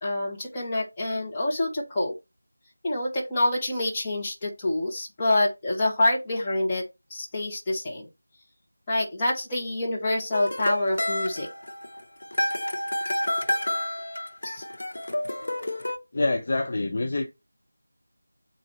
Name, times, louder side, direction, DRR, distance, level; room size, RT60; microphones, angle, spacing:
voice 1, 0.0-2.1 2.8-6.8 7.1-8.0 8.9-11.5 14.4-14.6, left 1 dB, 15° left, 1.2 m, -26 dB
sound 1, 10.3-16.0, left 1 dB, 55° left, 1.0 m, -29 dB
voice 2, 16.1-17.3, left 2 dB, 35° left, 0.6 m, -26 dB
8.0 x 2.7 x 4.3 m
figure-of-eight pair, 170°, 0 cm